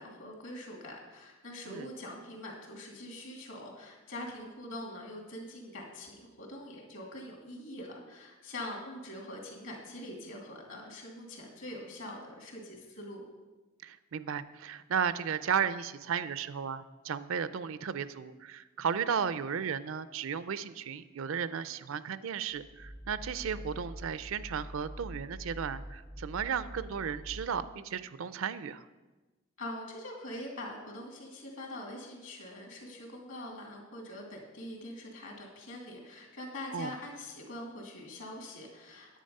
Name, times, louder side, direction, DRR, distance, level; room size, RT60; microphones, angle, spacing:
voice 1, 0.0-13.3 29.6-39.2, left 1 dB, 60° left, 0 dB, 2.6 m, -44 dB
voice 2, 13.8-28.9 36.7-36.9, right 7 dB, 65° right, 15 dB, 0.4 m, -34 dB
sound 1, 22.5-28.0, equal, ahead, 0.3 m, -45 dB
10.0 x 8.5 x 5.3 m, 1.2 s
head